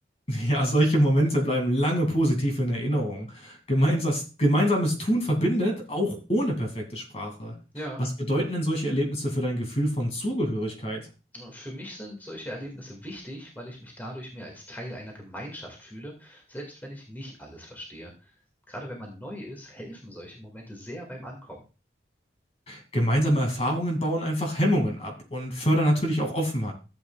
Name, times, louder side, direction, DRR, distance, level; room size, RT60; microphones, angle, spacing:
voice 1, 0.3-7.5 8.0-11.0 22.7-26.7, equal, 35° left, 3 dB, 2.4 m, -25 dB
voice 2, 11.3-18.4 18.7-21.6, equal, 10° left, 0 dB, 2.0 m, -40 dB
13.5 x 8.2 x 2.3 m, 0.32 s
head